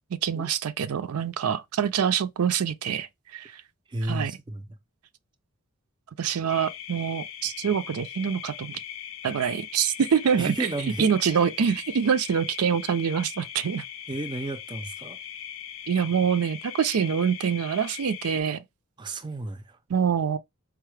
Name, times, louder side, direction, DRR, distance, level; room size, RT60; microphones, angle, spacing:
voice 1, 0.1-3.1 3.3-3.5 4.1-4.4 6.2-8.7 9.2-10.7 11.0-13.8 15.9-18.6 19.9-20.4, right 7 dB, 85° right, 0.4 m, -25 dB
voice 2, 3.9-4.7 10.4-11.1 14.1-15.2 19.0-19.8, right 2 dB, 20° right, 0.4 m, -32 dB
sound 1, 6.5-18.4, left 9 dB, 65° left, 0.5 m, -40 dB
4.6 x 2.0 x 3.2 m
head